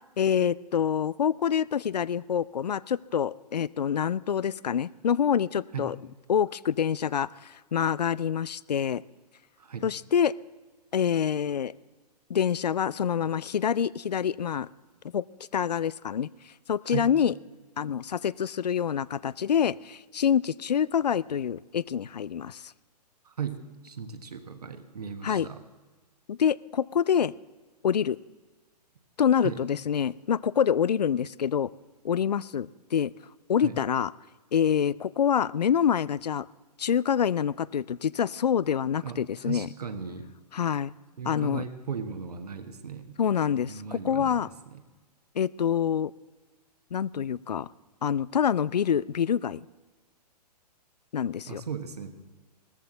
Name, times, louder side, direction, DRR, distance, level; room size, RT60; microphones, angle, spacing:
voice 1, 0.2-6.0 6.3-7.3 7.7-9.0 9.8-10.3 10.9-11.7 12.3-14.7 15.1-15.2 15.5-16.3 16.7-17.3 17.8-22.6 25.2-25.5 26.3-27.3 27.8-28.2 29.2-31.7 32.0-33.1 33.5-34.1 34.5-36.5 36.8-39.7 40.5-40.9 41.3-41.6 43.2-44.5 45.4-46.1 46.9-47.7 48.0-49.6 51.1-51.6, left 8 dB, 75° left, 21 dB, 0.4 m, -26 dB
voice 2, 23.2-25.6 29.4-29.6 33.6-33.8 39.0-40.3 41.2-43.2 43.7-44.8 51.5-52.1, right 7 dB, 70° right, 8 dB, 1.4 m, -37 dB
16.5 x 14.0 x 3.8 m, 1.3 s
figure-of-eight pair, 115°, 21 cm